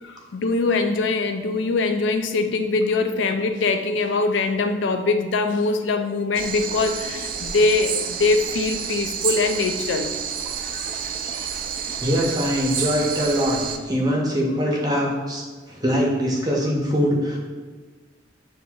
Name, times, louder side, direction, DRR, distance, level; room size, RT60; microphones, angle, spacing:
voice 1, 0.0-10.1 10.7-10.9 11.2-11.5, left 3 dB, 70° left, 7 dB, 0.4 m, -23 dB
sound 1, 6.3-13.8, right 7 dB, 45° right, 0.3 m, -29 dB
voice 2, 12.0-17.4, equal, 20° right, -2 dB, 0.7 m, -23 dB
7.4 x 2.6 x 2.3 m, 1.4 s
head